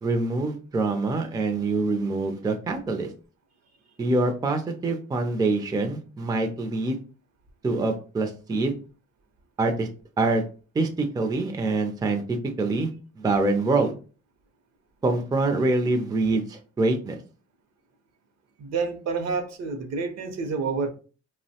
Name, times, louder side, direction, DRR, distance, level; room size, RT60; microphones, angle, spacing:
voice 1, 0.0-3.1 4.0-7.0 7.6-8.7 9.6-9.9 10.2-10.4 10.7-12.9 13.2-13.9 15.0-17.2, right 3 dB, 15° right, 0.4 m, -25 dB
voice 2, 18.6-20.9, right 4 dB, 60° right, 0.7 m, -28 dB
3.0 x 2.0 x 2.8 m
cardioid pair, 90°, 30 cm